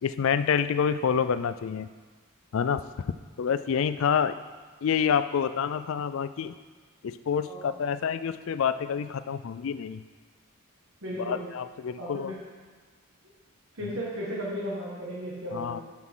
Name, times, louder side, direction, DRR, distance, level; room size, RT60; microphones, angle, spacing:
voice 1, 0.0-1.9 2.5-2.8 3.4-4.4 4.8-6.6 7.0-10.0 11.2-12.3 13.8-13.9 15.5-15.8, left 7 dB, 60° left, 13 dB, 0.3 m, -27 dB
voice 2, 11.0-11.5 12.0-12.4 13.7-15.8, equal, 60° right, -6 dB, 1.8 m, -35 dB
10.5 x 6.2 x 3.8 m, 1.5 s
head